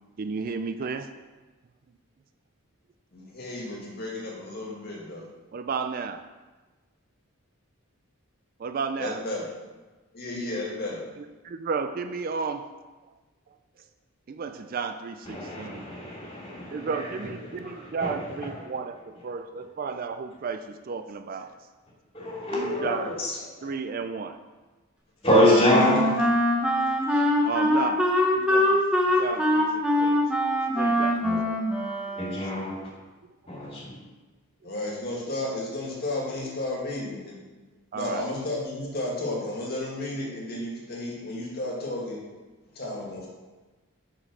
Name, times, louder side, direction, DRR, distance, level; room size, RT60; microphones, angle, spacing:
voice 1, 0.2-1.1 5.5-6.2 8.6-9.3 11.2-12.7 14.3-15.8 16.7-21.5 22.5-23.1 23.6-24.4 27.5-28.8 29.2-30.3 30.8-31.3 33.6-33.7 37.9-38.3, right 5 dB, 40° right, 8 dB, 0.3 m, -33 dB
voice 2, 3.1-5.3 9.0-9.5 10.1-11.0 34.6-37.4 37.9-42.2 42.8-43.3, left 2 dB, 45° left, -3 dB, 1.9 m, -33 dB
voice 3, 15.3-17.1 17.6-17.7 18.0-18.1 22.1-23.0 23.6-23.7 25.2-26.1 31.2-31.4 32.2-32.7 33.5-33.9, left 1 dB, 25° left, -5 dB, 2.5 m, -24 dB
Wind instrument woodwind instrument, 25.3-32.7, left 1 dB, 5° right, 0.9 m, -24 dB
6.3 x 5.3 x 6.1 m, 1.2 s
head